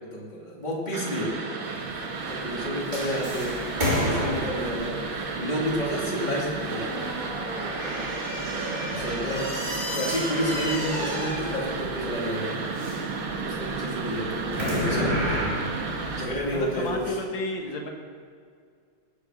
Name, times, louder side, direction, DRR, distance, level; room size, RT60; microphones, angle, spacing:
voice 1, 0.0-1.4 1.7-1.9 2.3-3.6 4.0-7.1 8.8-9.5 9.9-12.6 13.4-15.4 16.1-17.2, equal, 20° left, -4 dB, 2.8 m, -30 dB
sound 1, 0.9-16.3, right 4 dB, 70° right, 2.1 m, -33 dB
sound 2, 1.6-17.0, equal, 20° right, 3.2 m, -32 dB
voice 2, 16.5-17.9, left 2 dB, 65° left, 2 dB, 2.3 m, -32 dB
19.5 x 6.6 x 6.3 m, 2.1 s
omnidirectional pair, 2.3 m